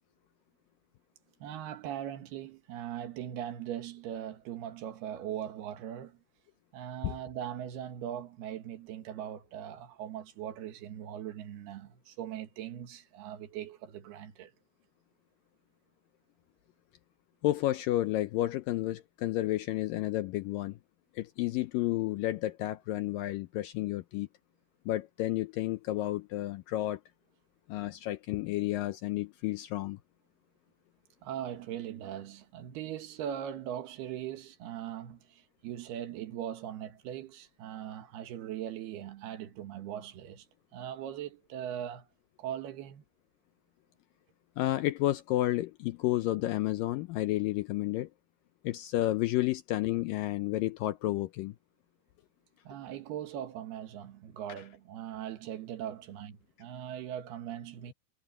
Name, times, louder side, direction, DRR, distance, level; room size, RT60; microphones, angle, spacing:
voice 1, 1.4-6.2 6.7-14.5 31.2-40.5 40.7-42.1 42.4-43.0 52.7-57.9, right 10 dB, 75° right, 3.5 m, -40 dB
voice 2, 17.4-20.8 21.2-24.3 24.9-27.0 27.7-30.0 44.6-48.1 48.6-51.6, left 16 dB, 80° left, 2.0 m, -31 dB
omnidirectional pair, 4.6 m